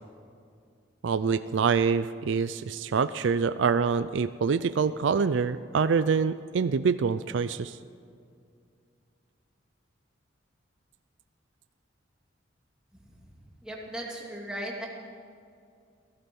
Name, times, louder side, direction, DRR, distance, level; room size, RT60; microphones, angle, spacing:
voice 1, 1.0-7.8, right 5 dB, 70° right, 13 dB, 0.4 m, -25 dB
voice 2, 13.6-14.9, right 1 dB, 5° right, -3 dB, 2.7 m, -37 dB
16.5 x 15.0 x 5.5 m, 2.3 s
head